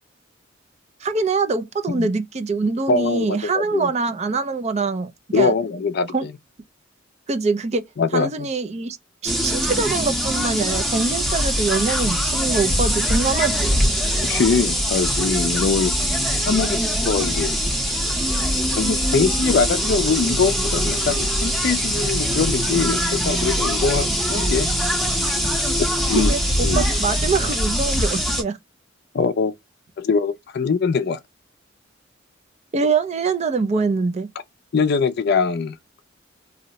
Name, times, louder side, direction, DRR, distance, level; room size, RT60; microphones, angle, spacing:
voice 1, 1.0-5.1 5.3-5.5 6.1-6.3 7.3-7.8 8.1-9.0 9.2-13.7 26.1-28.6 32.7-34.3, right 4 dB, 35° right, 0.4 m, -24 dB
voice 2, 2.9-3.9 5.3-6.3 8.0-8.5 14.2-15.9 16.5-17.6 18.8-24.7 26.1-26.3 26.6-26.8 29.1-29.5 30.0-31.2 34.7-35.8, left 5 dB, 55° left, 0.4 m, -22 dB
sound 1, 9.3-28.4, equal, ahead, 0.7 m, -22 dB
2.7 x 2.1 x 3.9 m
head